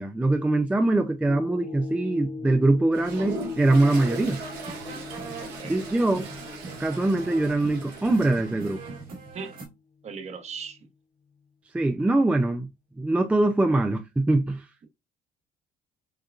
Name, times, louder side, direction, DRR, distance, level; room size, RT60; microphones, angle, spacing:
voice 1, 0.0-4.4 5.7-6.3 6.8-8.8 11.7-12.7 13.0-14.7, right 2 dB, 10° right, 0.3 m, -23 dB
sound 1, 1.3-9.7 10.2-10.3, left 4 dB, 50° left, 0.5 m, -41 dB
Toilet flush, 2.9-8.7, right 3 dB, 75° right, 1.7 m, -39 dB
sound 2, 3.6-9.7, right 4 dB, 60° right, 1.9 m, -41 dB
voice 2, 5.4-6.0 9.3-9.6 10.0-10.8, right 5 dB, 40° right, 1.0 m, -39 dB
6.4 x 2.3 x 2.4 m
cardioid pair, 110°, 17 cm